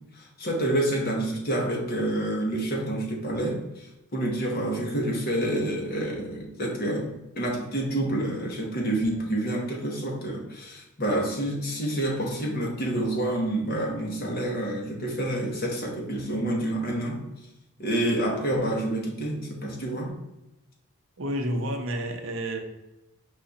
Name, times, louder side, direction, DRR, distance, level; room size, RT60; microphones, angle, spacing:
voice 1, 0.1-17.2 17.8-20.1, right 1 dB, 45° left, 0 dB, 1.0 m, -28 dB
voice 2, 21.2-22.6, equal, 60° right, 3 dB, 0.7 m, -30 dB
4.9 x 2.4 x 3.9 m, 0.93 s
head